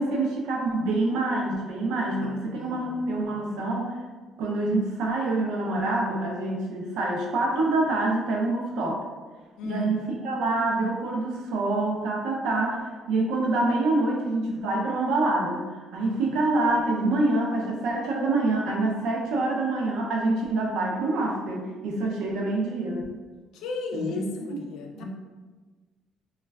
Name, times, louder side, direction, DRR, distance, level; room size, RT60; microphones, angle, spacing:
voice 1, 0.0-4.0 4.4-9.0 9.6-23.1 23.9-24.2 24.5-24.6 25.0-25.1, right 2 dB, 90° right, -2 dB, 0.6 m, -26 dB
voice 2, 2.2-3.4 9.6-10.0 23.5-25.0, left 3 dB, 80° left, 2 dB, 0.4 m, -35 dB
3.1 x 2.3 x 2.3 m, 1.4 s
cardioid pair, 160°, 0 cm